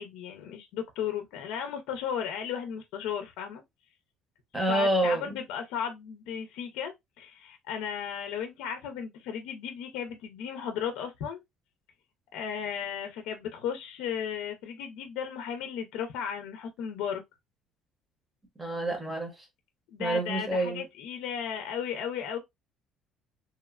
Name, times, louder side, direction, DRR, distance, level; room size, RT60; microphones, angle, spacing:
voice 1, 0.0-3.6 4.5-11.4 12.3-17.2 19.9-22.4, left 8 dB, 80° left, 0.5 m, -35 dB
voice 2, 4.5-5.4 18.6-19.3 20.0-20.8, right 1 dB, 10° right, 0.8 m, -27 dB
2.9 x 2.1 x 2.3 m
cardioid pair, 160°, 0 cm